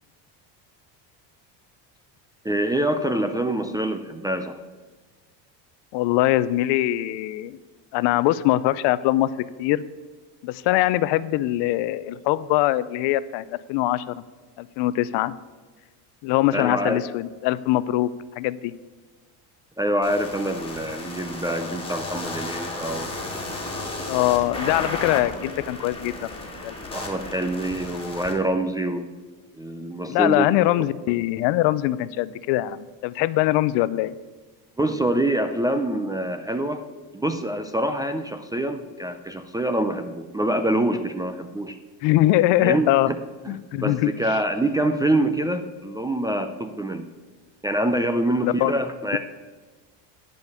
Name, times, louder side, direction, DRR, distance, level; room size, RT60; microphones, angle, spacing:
voice 1, 2.4-4.6 16.5-17.0 19.8-23.1 26.9-29.1 29.6-30.5 34.8-36.8 37.1-41.8 42.6-43.2 43.5-47.1 47.6-49.2, right 1 dB, 10° right, 4 dB, 0.3 m, -25 dB
voice 2, 5.9-7.6 7.9-9.3 9.6-9.8 10.4-14.1 14.6-15.3 16.2-18.1 18.4-18.7 24.1-26.3 26.6-26.7 30.1-34.1 42.0-43.1 43.5-44.1 48.4-48.7, left 15 dB, 70° left, 16 dB, 0.6 m, -22 dB
sound 1, 20.0-28.3, left 2 dB, 10° left, 2.1 m, -34 dB
10.5 x 5.3 x 8.3 m, 1.3 s
cardioid pair, 130°, 45 cm